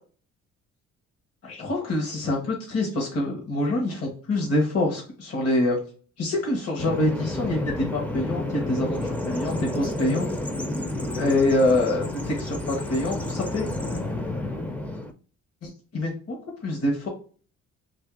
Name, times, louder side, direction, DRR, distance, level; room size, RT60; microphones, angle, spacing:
voice 1, 1.4-5.8 6.2-10.3 11.1-13.7 15.6-16.4 16.6-17.1, left 1 dB, 55° left, 0 dB, 1.1 m, -25 dB
Bird vocalization bird call bird song, 6.8-15.1, left 1 dB, 5° left, 0.4 m, -30 dB
2.7 x 2.6 x 3.6 m, 0.41 s
cardioid pair, 90°, 30 cm